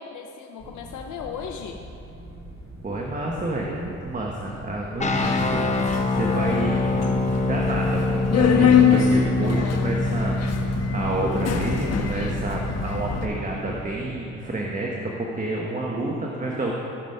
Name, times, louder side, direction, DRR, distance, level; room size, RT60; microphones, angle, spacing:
voice 1, 0.0-1.8 9.4-10.0, left 6 dB, 80° left, 3 dB, 0.7 m, -36 dB
sound 1, 0.6-14.1, equal, 45° right, 2.9 m, -43 dB
voice 2, 2.8-5.7 6.0-10.3 10.9-16.7, right 2 dB, 25° right, -2 dB, 1.2 m, -29 dB
sound 2, 5.0-13.9, left 2 dB, 25° left, 0.9 m, -26 dB
Subway metro underground, 5.1-13.2, left 7 dB, 55° left, 1.2 m, -24 dB
14.0 x 6.1 x 5.6 m, 2.9 s
cardioid pair, 90°, 30 cm